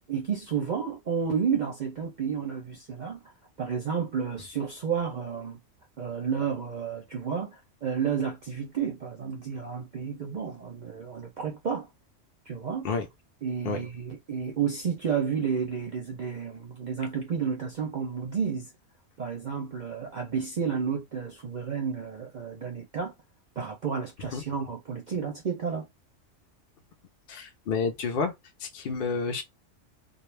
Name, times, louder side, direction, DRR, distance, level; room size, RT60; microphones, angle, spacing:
voice 1, 0.1-3.2 3.6-5.6 6.0-11.9 12.5-12.9 13.4-18.7 19.2-23.1 23.6-25.9, right 6 dB, 50° right, 0.5 m, -31 dB
voice 2, 27.3-28.3 28.6-29.4, left 4 dB, 60° left, 0.6 m, -29 dB
2.4 x 2.1 x 3.2 m
omnidirectional pair, 1.3 m